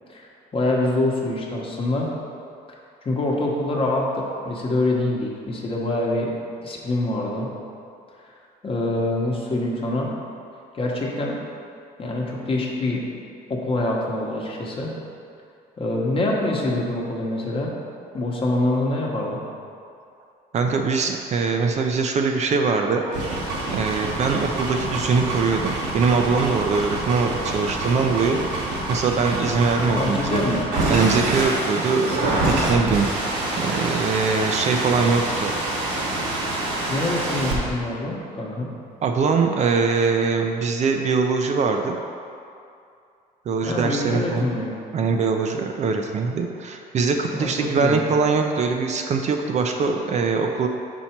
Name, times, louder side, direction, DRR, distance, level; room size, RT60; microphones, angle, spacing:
voice 1, 0.1-2.1 3.0-6.3 6.6-7.5 8.6-10.1 10.7-11.4 12.0-13.0 13.5-14.9 15.8-17.7 18.1-19.4 29.9-30.7 36.9-38.7 43.6-44.7 47.3-48.0, left 2 dB, 35° left, -2 dB, 1.0 m, -25 dB
voice 2, 20.5-23.0 23.7-28.6 28.9-30.4 30.9-35.5 39.0-42.0 43.5-44.4 44.9-50.7, right 4 dB, 40° right, 3 dB, 0.4 m, -22 dB
sound 1, 23.0-37.6, right 2 dB, 85° right, 1.2 m, -26 dB
5.5 x 4.4 x 4.4 m, 2.5 s
cardioid pair, 110°, 17 cm